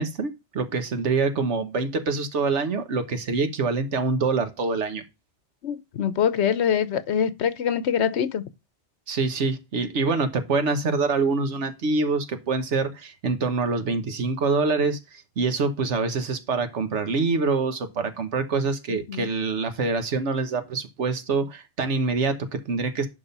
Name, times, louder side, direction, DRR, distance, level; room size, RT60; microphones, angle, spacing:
voice 1, 0.0-5.0 9.1-23.1, right 4 dB, 90° right, 1.4 m, -25 dB
voice 2, 5.6-8.4 18.9-19.3, left 8 dB, 75° left, 1.1 m, -24 dB
11.0 x 3.7 x 5.4 m
omnidirectional pair, 1.2 m